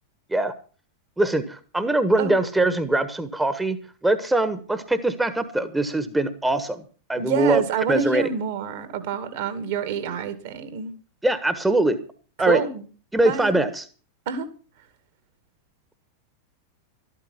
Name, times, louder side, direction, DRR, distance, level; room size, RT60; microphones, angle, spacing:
voice 1, 1.2-3.8 4.0-6.8 7.1-7.6 7.9-8.3 11.2-12.0 12.4-12.6 13.1-13.8, right 2 dB, 5° right, 11 dB, 1.3 m, -22 dB
voice 2, 7.2-10.9 12.4-12.8 13.2-13.5 14.3-14.5, right 7 dB, 55° right, 10 dB, 2.3 m, -27 dB
13.0 x 12.5 x 5.9 m, 0.39 s
figure-of-eight pair, 90°, 0 cm